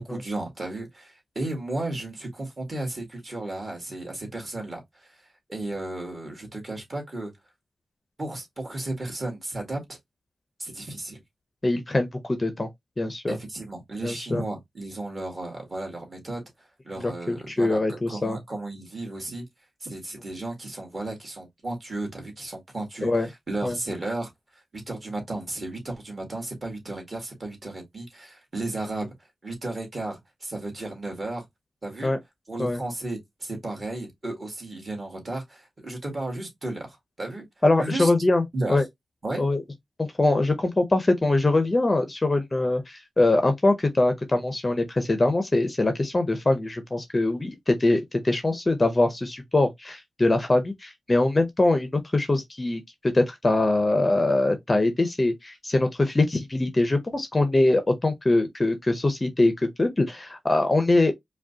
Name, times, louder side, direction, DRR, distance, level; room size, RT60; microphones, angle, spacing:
voice 1, 0.0-5.2 5.5-7.3 8.2-10.0 10.6-11.2 13.3-16.4 16.8-19.5 19.8-24.3 24.7-29.1 29.4-31.5 31.8-32.1 32.5-37.5 37.8-38.1 38.5-38.8 39.2-39.5, right 2 dB, 35° right, 1.8 m, -34 dB
voice 2, 11.6-12.7 13.0-13.4 14.0-14.4 17.0-18.4 23.0-23.3 23.6-23.7 32.0-32.2 32.6-32.8 37.6-38.4 38.7-38.8 39.4-39.6 40.0-61.1, left 2 dB, 25° left, 0.6 m, -23 dB
4.9 x 2.2 x 2.7 m
wide cardioid pair, 125°, 0 cm